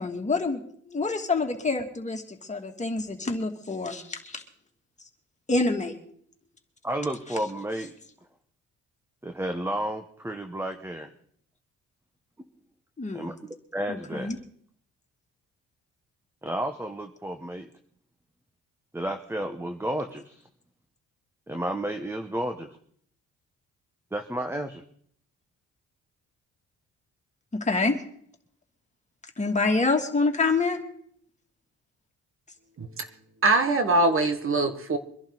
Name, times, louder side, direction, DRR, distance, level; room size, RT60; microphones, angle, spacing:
voice 1, 0.0-4.4 5.5-5.9 13.0-13.3 13.9-14.4 27.5-28.0 29.4-30.8, left 3 dB, 25° left, 3 dB, 2.7 m, -27 dB
voice 2, 6.8-7.9 9.2-11.1 13.1-14.3 16.4-17.7 18.9-20.5 21.5-22.7 24.1-24.8, right 1 dB, 10° right, 6 dB, 1.3 m, -32 dB
voice 3, 33.4-35.0, right 2 dB, 45° right, 8 dB, 1.8 m, -22 dB
24.0 x 11.5 x 4.1 m, 0.63 s
cardioid pair, 90°, 30 cm